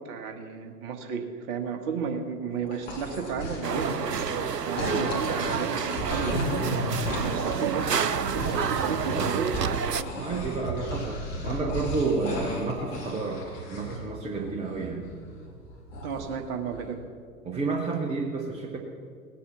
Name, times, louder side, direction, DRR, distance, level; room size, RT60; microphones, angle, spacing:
voice 1, 0.0-4.3 4.6-6.6 6.9-9.5 16.0-17.0, right 6 dB, 35° right, 5 dB, 1.6 m, -33 dB
sound 1, 2.5-4.4 4.8-14.0 14.3-16.3 16.7-16.9, equal, 50° left, 3.7 m, -35 dB
sound 2, 3.6-10.0, right 7 dB, 90° right, 0.6 m, -29 dB
voice 2, 10.1-13.4 13.7-15.1 17.4-18.8, right 3 dB, 15° right, 1 dB, 1.1 m, -30 dB
18.0 x 8.7 x 7.1 m, 2.1 s
figure-of-eight pair, 105°, 47 cm